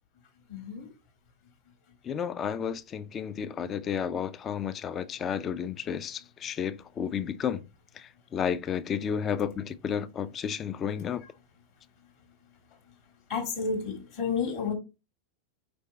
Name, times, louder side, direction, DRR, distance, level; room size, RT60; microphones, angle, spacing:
voice 1, 0.5-0.9 13.3-14.7, left 5 dB, 50° left, 1.9 m, -31 dB
voice 2, 2.0-7.6 8.0-11.2, left 8 dB, 25° left, 0.3 m, -32 dB
5.0 x 3.3 x 3.0 m
figure-of-eight pair, 90°, 0 cm